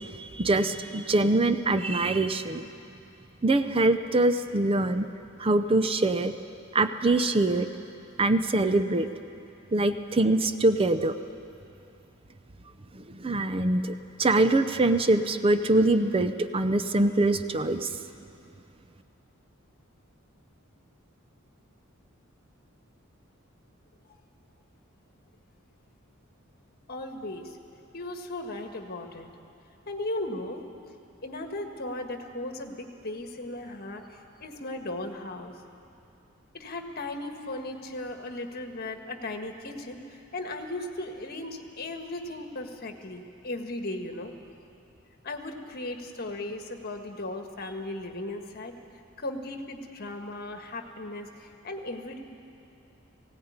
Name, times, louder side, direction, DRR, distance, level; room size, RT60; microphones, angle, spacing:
voice 1, 0.0-2.7 3.4-5.1 5.4-6.3 6.7-7.7 8.2-9.1 9.7-11.1 12.9-18.0, right 2 dB, 25° right, 10 dB, 0.6 m, -24 dB
voice 2, 26.9-27.6 27.9-29.3 29.9-30.6 31.2-35.6 36.5-44.3 45.2-48.7 49.2-52.2, left 2 dB, 50° left, 5 dB, 1.6 m, -37 dB
18.0 x 16.5 x 9.5 m, 2.6 s
head